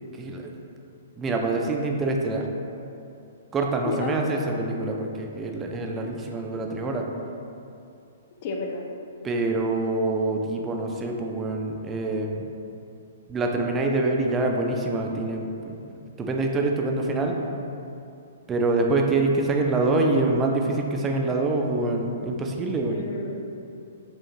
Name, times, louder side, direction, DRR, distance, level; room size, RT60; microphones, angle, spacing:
voice 1, 0.1-0.5 1.2-2.5 3.5-7.1 9.2-12.5 13.3-15.8 16.2-17.4 18.5-23.0, right 2 dB, 20° right, 1 dB, 0.4 m, -25 dB
voice 2, 3.8-4.1 8.4-8.8 22.9-23.4, left 3 dB, 45° left, 1 dB, 0.4 m, -31 dB
4.5 x 2.3 x 2.8 m, 2.6 s
figure-of-eight pair, 115°, 0 cm